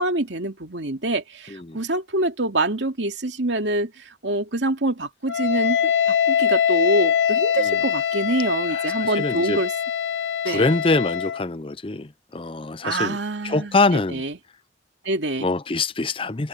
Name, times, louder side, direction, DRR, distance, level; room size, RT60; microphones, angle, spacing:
voice 1, 0.0-9.7 10.4-10.7 12.8-13.8 14.1-14.3 15.0-15.5, right 2 dB, 75° right, 2.5 m, -25 dB
voice 2, 1.5-1.8 7.6-7.8 8.7-9.6 10.4-13.2 13.4-14.2 15.4-16.5, left 3 dB, 30° left, 0.6 m, -24 dB
Wind instrument woodwind instrument, 5.3-11.4, left 8 dB, 75° left, 1.2 m, -23 dB
head